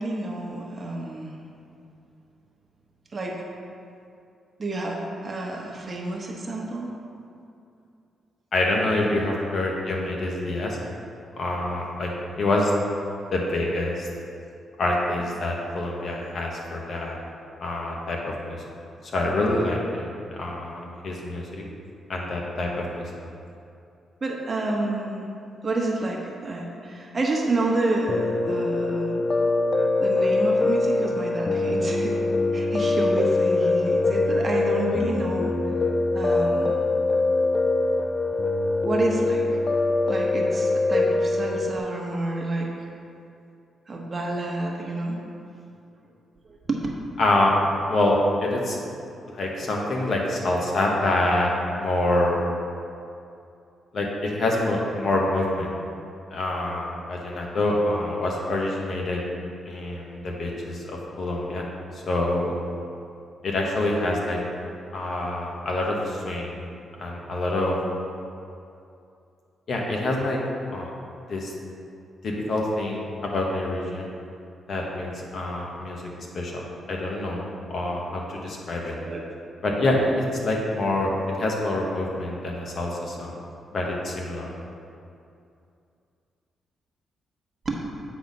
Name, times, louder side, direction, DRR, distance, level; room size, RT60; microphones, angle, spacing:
voice 1, 0.0-1.3 3.1-3.4 4.6-6.9 9.0-9.3 24.2-25.3 25.6-29.2 30.0-32.2 32.5-35.7 36.1-36.7 38.8-39.6 40.1-42.7 43.9-45.2 46.5-46.8 79.1-79.2 87.6-87.8, right 2 dB, 35° right, -1 dB, 1.1 m, -29 dB
voice 2, 8.5-10.8 11.4-12.7 13.3-14.1 14.8-17.2 17.6-18.6 19.0-20.1 20.4-21.4 22.1-23.0 47.2-47.5 47.9-48.8 49.3-51.5 51.8-52.4 53.9-55.8 56.3-59.2 59.6-61.6 62.1-62.5 63.4-64.4 64.9-66.6 67.0-67.8 69.7-70.4 70.7-70.9 71.3-71.5 72.2-74.1 74.7-76.6 76.9-79.0 79.6-81.1 81.4-83.3 83.7-84.5, left 2 dB, 55° left, -1 dB, 1.2 m, -26 dB
Piano, 28.1-41.8, left 2 dB, 40° left, 0.3 m, -23 dB
8.1 x 4.2 x 5.3 m, 2.5 s
cardioid pair, 105°, 0 cm